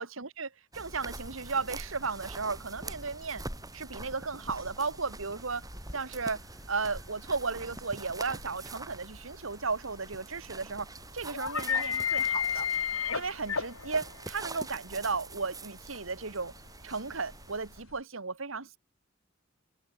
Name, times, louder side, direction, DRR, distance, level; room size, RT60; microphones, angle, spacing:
voice 1, 0.0-3.4 3.7-5.7 5.9-6.4 6.7-10.9 11.1-12.7 13.1-16.5 16.8-18.8, right 4 dB, 80° right, 1.9 m, -35 dB
sound 1, 0.7-17.8, right 2 dB, 20° right, 5.7 m, -45 dB
sound 2, 1.1-18.0, left 7 dB, 90° left, 5.7 m, -37 dB
head